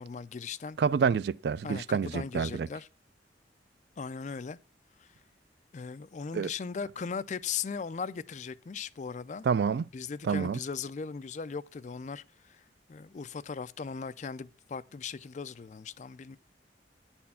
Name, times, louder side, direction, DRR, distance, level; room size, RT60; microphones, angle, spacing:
voice 1, 0.0-0.8 1.6-2.9 4.0-4.6 5.0-5.1 5.7-9.4 9.9-12.6 12.9-16.4, left 5 dB, 40° left, 0.4 m, -38 dB
voice 2, 0.8-2.7 6.3-6.5 9.4-9.9 10.2-10.6, right 6 dB, 60° right, 0.3 m, -28 dB
9.3 x 4.4 x 5.6 m
head